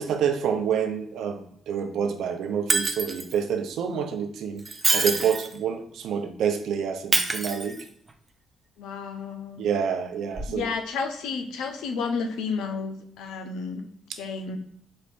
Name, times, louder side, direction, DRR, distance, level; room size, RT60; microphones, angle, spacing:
voice 1, 0.0-4.6 4.9-7.8 9.6-10.7, right 7 dB, 75° right, 6 dB, 0.5 m, -28 dB
Shatter, 2.7-3.4 4.6-5.6 7.1-8.1 10.3-10.5, right 3 dB, 30° right, 0.5 m, -26 dB
voice 2, 8.8-9.6 10.5-13.8 14.2-14.6, left 5 dB, 90° left, 6 dB, 0.5 m, -31 dB
4.3 x 2.5 x 3.5 m, 0.65 s
cardioid pair, 90°, 0 cm